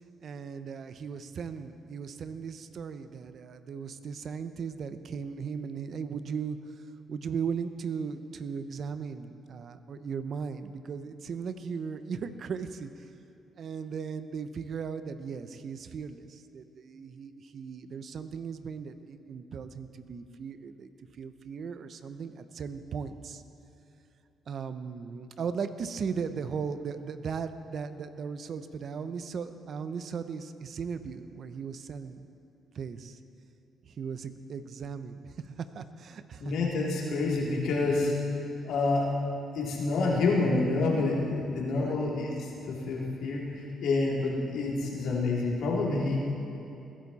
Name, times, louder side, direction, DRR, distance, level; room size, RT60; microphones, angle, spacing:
voice 1, 0.2-6.8 7.1-13.1 13.6-23.4 24.5-32.3 32.7-33.2 33.8-36.5 41.8-42.0, right 6 dB, 55° right, 11 dB, 0.7 m, -37 dB
voice 2, 36.4-38.1 38.6-39.1 39.5-46.2, left 3 dB, 80° left, -3 dB, 2.9 m, -28 dB
20.5 x 11.5 x 4.2 m, 2.9 s
cardioid pair, 90°, 0 cm